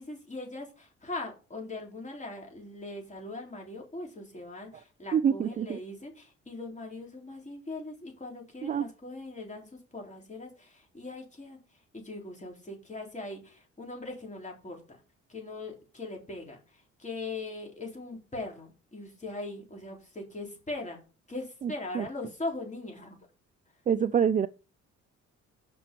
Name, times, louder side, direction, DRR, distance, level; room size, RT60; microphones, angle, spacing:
voice 1, 0.0-11.6 11.9-15.0 15.3-23.2, left 2 dB, 25° left, 3.8 m, -40 dB
voice 2, 5.1-5.8 8.6-8.9 21.6-22.1 23.9-24.5, right 8 dB, 25° right, 0.3 m, -26 dB
6.0 x 5.9 x 6.9 m
cardioid pair, 90°, 30 cm